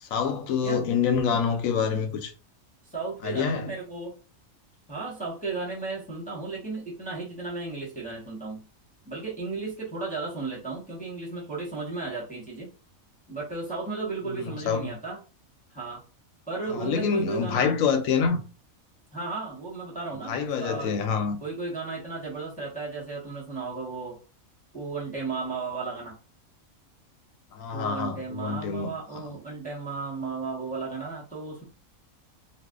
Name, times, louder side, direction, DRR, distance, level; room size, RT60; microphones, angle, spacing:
voice 1, 0.0-2.3 3.2-3.7 14.4-14.9 16.7-18.4 20.3-21.4 27.5-28.9, left 6 dB, 75° left, 1.0 m, -26 dB
voice 2, 2.8-4.2 4.9-8.7 9.0-12.7 13.3-15.2 15.7-16.0 16.5-17.8 19.1-21.0 21.4-24.2 24.7-26.2 27.7-31.6, right 4 dB, 5° left, 0.9 m, -34 dB
2.6 x 2.3 x 3.5 m
omnidirectional pair, 1.4 m